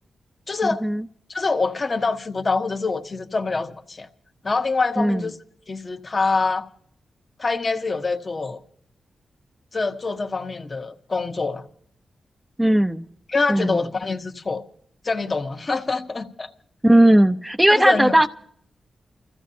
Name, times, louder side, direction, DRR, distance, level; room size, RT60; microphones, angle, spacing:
voice 1, 0.5-0.8 1.3-4.1 4.4-5.4 5.7-6.7 7.4-8.6 9.7-11.6 13.3-14.6 15.0-16.5 17.7-18.3, left 3 dB, 45° left, 1.3 m, -25 dB
voice 2, 5.0-5.3 12.6-13.1 13.5-13.8 16.8-18.3, right 1 dB, 10° right, 0.7 m, -17 dB
29.5 x 15.0 x 2.8 m
cardioid pair, 55°, 0 cm